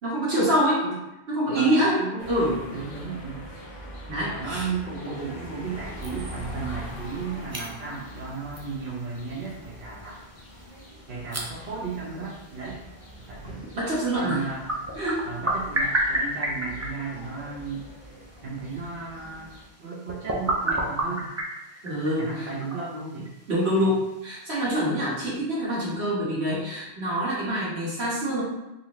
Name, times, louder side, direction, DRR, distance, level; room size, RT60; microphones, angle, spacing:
voice 1, 0.0-0.8 1.3-2.5 4.1-4.7 13.7-14.4 14.9-15.2 21.8-22.5 23.5-28.4, equal, 90° right, -7 dB, 1.5 m, -25 dB
voice 2, 1.5-2.3 2.7-3.5 4.3-10.2 11.1-12.8 13.2-13.6 14.1-14.7 15.2-17.9 18.4-19.5 19.8-21.3 22.2-23.3 23.8-24.0, right 5 dB, 70° right, -7 dB, 1.1 m, -35 dB
sound 1, 2.2-19.7, equal, 35° left, 0.9 m, -42 dB
sound 2, 5.2-24.8, right 1 dB, 25° right, 0.3 m, -34 dB
4.0 x 2.6 x 3.0 m, 0.96 s
omnidirectional pair, 1.0 m